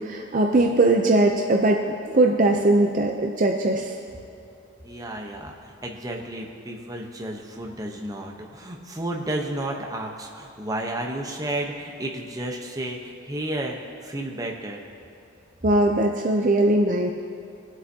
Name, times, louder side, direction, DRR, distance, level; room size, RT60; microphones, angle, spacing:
voice 1, 0.0-1.8 2.1-4.0 15.6-17.1, right 2 dB, 40° right, 2 dB, 0.5 m, -20 dB
voice 2, 4.8-13.8 14.0-14.8, right 1 dB, 15° right, 0 dB, 0.9 m, -32 dB
21.5 x 8.0 x 2.8 m, 2.6 s
head